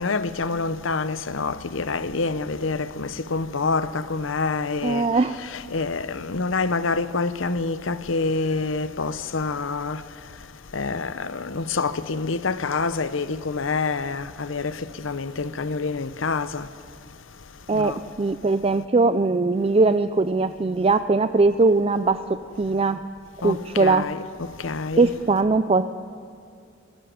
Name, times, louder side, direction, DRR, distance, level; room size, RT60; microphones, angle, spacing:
voice 1, 0.0-5.1 5.5-10.0 10.7-14.7 15.0-16.7 17.7-18.0 23.4-23.5 23.8-24.2 24.6-25.1, left 4 dB, 80° left, 0.8 m, -27 dB
voice 2, 4.8-5.3 17.7-22.2 22.6-23.0 23.4-24.0 25.0-25.8, right 3 dB, 30° right, 0.4 m, -20 dB
19.5 x 15.0 x 9.5 m
head